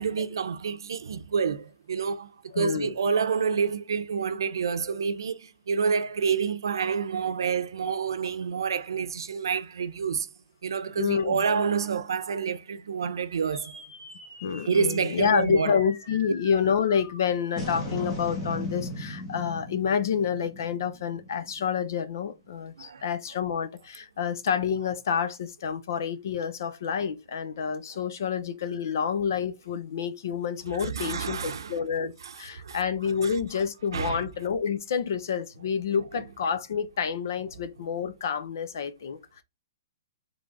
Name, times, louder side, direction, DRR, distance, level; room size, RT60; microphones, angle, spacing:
voice 1, 0.0-10.3 10.6-13.8 14.7-15.8 22.8-23.0 30.8-32.8 33.2-33.3 33.9-34.3, right 6 dB, 80° right, 0.6 m, -28 dB
voice 2, 2.5-2.9 11.0-11.4 14.4-39.4, left 7 dB, 50° left, 0.7 m, -28 dB
sound 1, 13.5-22.1, left 1 dB, 15° left, 1.2 m, -39 dB
3.9 x 3.4 x 3.5 m
hypercardioid pair, 175°, 2 cm